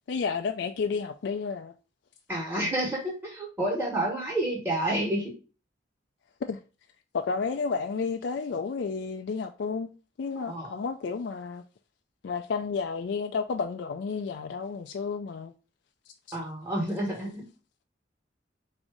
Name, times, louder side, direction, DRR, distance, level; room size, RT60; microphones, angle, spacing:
voice 1, 0.1-1.7 6.5-6.6 7.1-11.6 12.2-15.5 16.3-16.4, left 5 dB, 60° left, 0.3 m, -31 dB
voice 2, 2.3-5.3 10.4-10.8 16.3-17.5, right 1 dB, 10° right, 1.3 m, -29 dB
4.0 x 2.7 x 4.8 m
head